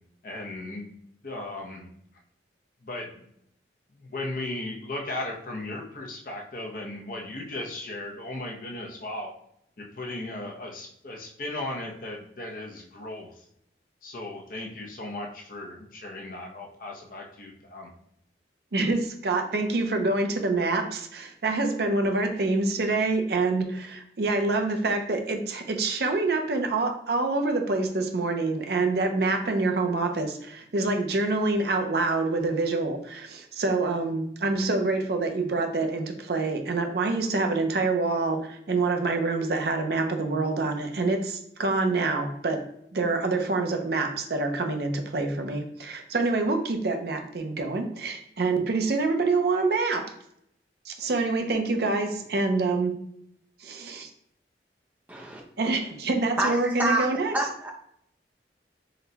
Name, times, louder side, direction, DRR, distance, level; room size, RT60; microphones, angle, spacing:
voice 1, 0.2-1.0 1.2-1.9 2.8-3.3 3.9-9.3 9.8-13.4 14.0-17.9, left 2 dB, 50° left, 0 dB, 0.7 m, -36 dB
voice 2, 18.7-42.6 42.9-50.0 50.9-52.9 53.6-54.1 55.6-57.3, right 3 dB, 60° right, 4 dB, 0.5 m, -26 dB
voice 3, 55.1-55.4 56.4-57.7, right 2 dB, 10° right, -1 dB, 0.6 m, -28 dB
3.9 x 2.2 x 4.0 m, 0.72 s
head